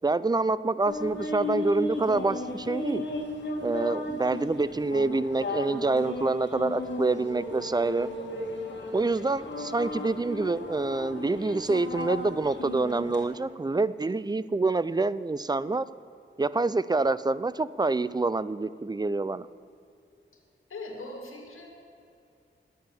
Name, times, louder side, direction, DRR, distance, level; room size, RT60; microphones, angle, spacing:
voice 1, 0.0-3.1 3.6-8.1 8.9-15.9 16.4-19.5, right 3 dB, 20° right, 17 dB, 0.4 m, -27 dB
sound 1, 0.8-13.2, left 1 dB, 60° left, 2.2 m, -35 dB
voice 2, 20.7-21.7, left 2 dB, 85° left, 1 dB, 2.2 m, -40 dB
10.5 x 8.9 x 7.1 m, 2.6 s
wide cardioid pair, 70°, 21 cm